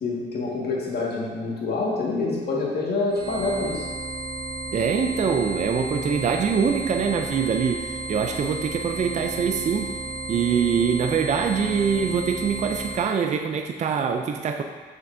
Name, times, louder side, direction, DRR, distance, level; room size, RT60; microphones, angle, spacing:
voice 1, 0.0-3.9, left 3 dB, 55° left, -4 dB, 1.7 m, -26 dB
sound 1, 3.1-13.1, right 2 dB, 70° right, 1.4 m, -33 dB
voice 2, 4.7-9.9 10.3-14.6, right 6 dB, 35° right, 5 dB, 0.4 m, -24 dB
6.6 x 5.8 x 2.6 m, 1.5 s
cardioid pair, 90°, 20 cm